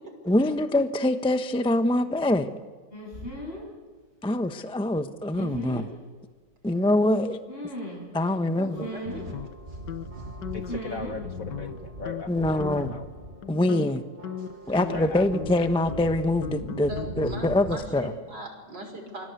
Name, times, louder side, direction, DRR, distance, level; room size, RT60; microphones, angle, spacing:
voice 1, 0.3-2.5 4.2-5.9 6.6-7.4 8.1-8.9 12.3-13.0 13.5-14.0 14.7-18.1, left 1 dB, 5° left, 8 dB, 0.7 m, -24 dB
sound 1, 2.9-3.7 5.3-5.9 7.5-8.1 8.8-9.3 10.7-11.2 11.4-11.7, equal, 30° left, 8.2 m, -36 dB
voice 2, 8.6-9.3 9.7-9.8 10.2-10.3 14.4-15.0 16.9-19.3, equal, 80° right, 3 dB, 6.4 m, -40 dB
sound 2, 9.1-10.1 10.4-10.8 11.2-11.8 12.1-12.3 12.6-13.0 13.4-17.8, left 9 dB, 85° left, 1.7 m, -38 dB
sound 3, 9.1-18.0, right 2 dB, 30° right, 2.4 m, -40 dB
voice 3, 10.5-13.1 14.9-15.5, left 5 dB, 55° left, 6 dB, 1.5 m, -39 dB
29.0 x 24.0 x 8.3 m, 1.4 s
omnidirectional pair, 1.9 m